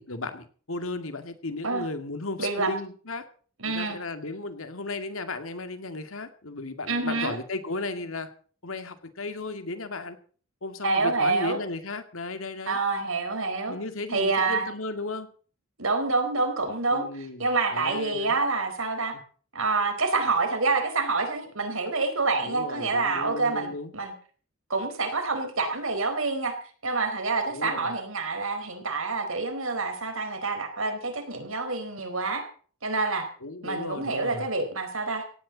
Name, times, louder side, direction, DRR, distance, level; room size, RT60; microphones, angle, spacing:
voice 1, 0.0-3.2 3.6-8.3 8.6-10.2 10.6-12.8 13.7-15.3 16.9-17.5 17.7-18.4 22.4-23.9 27.5-27.9 33.4-34.5, left 2 dB, 75° left, 8 dB, 2.2 m, -35 dB
voice 2, 2.4-2.7 3.6-4.0 6.9-7.4 10.8-11.6 12.7-13.8 14.1-14.7 15.8-19.1 19.5-24.1 24.7-26.5 26.8-32.4 32.8-33.3 33.6-35.2, right 3 dB, 75° right, 6 dB, 4.6 m, -27 dB
17.5 x 17.0 x 4.1 m, 0.43 s
head